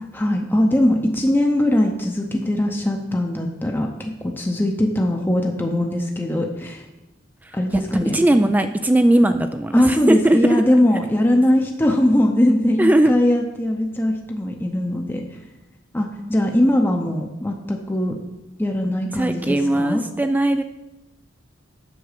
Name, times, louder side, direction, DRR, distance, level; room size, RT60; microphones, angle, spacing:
voice 1, 0.0-6.8 7.5-8.2 9.7-15.2 15.9-18.2 18.6-20.0, left 1 dB, 10° left, 1 dB, 0.7 m, -20 dB
voice 2, 7.9-10.6 12.8-13.1 19.2-20.6, right 1 dB, 10° right, 8 dB, 0.3 m, -18 dB
7.9 x 6.0 x 6.7 m, 0.97 s
head